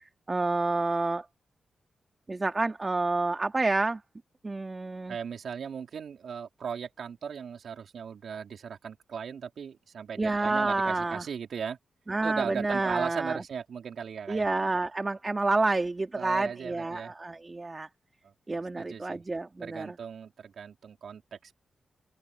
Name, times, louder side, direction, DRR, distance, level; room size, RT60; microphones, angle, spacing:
voice 1, 0.3-1.2 2.3-4.0 4.4-5.2 10.2-11.3 12.1-13.4 14.3-17.9 18.5-19.9, right 3 dB, 30° right, 2.9 m, -29 dB
voice 2, 5.1-11.8 12.2-14.4 16.2-17.1 18.2-19.2 19.6-21.6, right 7 dB, 75° right, 3.6 m, -38 dB
open air
cardioid pair, 65°, 0 cm